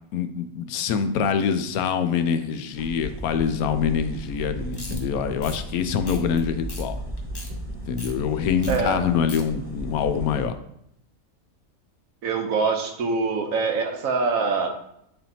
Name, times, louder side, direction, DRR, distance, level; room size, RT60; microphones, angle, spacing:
voice 1, 0.1-7.0 7.8-10.5, left 7 dB, 85° left, 9 dB, 1.1 m, -25 dB
sound 1, 2.7-10.5, right 1 dB, 5° right, 1.0 m, -34 dB
sound 2, 4.7-5.0 5.4-5.6 6.1-6.4 6.7-6.8 7.2-7.5 8.0-8.1 8.6-8.8 9.0-9.4, left 2 dB, 25° left, 0.6 m, -39 dB
voice 2, 8.7-9.1 12.2-14.7, right 4 dB, 70° right, 4 dB, 1.2 m, -24 dB
10.0 x 3.5 x 2.8 m, 0.75 s
omnidirectional pair, 1.5 m